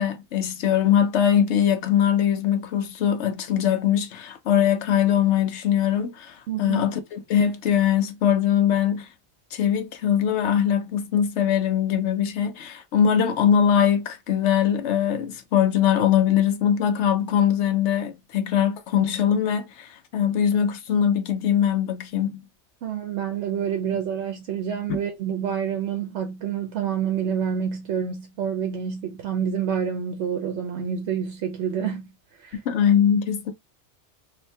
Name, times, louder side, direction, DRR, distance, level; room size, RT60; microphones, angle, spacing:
voice 1, 0.0-9.1 9.5-22.4 24.9-25.0 32.7-33.5, left 9 dB, 85° left, 1.0 m, -22 dB
voice 2, 6.5-6.8 22.8-32.1 32.4-32.6, right 8 dB, 85° right, 1.0 m, -28 dB
2.8 x 2.7 x 3.2 m
omnidirectional pair, 1.2 m